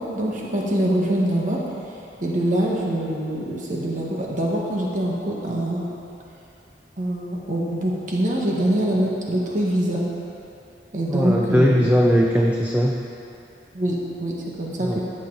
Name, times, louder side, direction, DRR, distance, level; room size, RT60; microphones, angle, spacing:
voice 1, 0.0-1.6 2.2-5.9 7.0-10.0 10.9-11.9 13.7-15.0, right 1 dB, 45° right, -3 dB, 1.4 m, -24 dB
voice 2, 11.1-13.0 14.8-15.0, equal, 10° right, -1 dB, 0.5 m, -19 dB
13.5 x 8.5 x 3.9 m, 2.8 s
head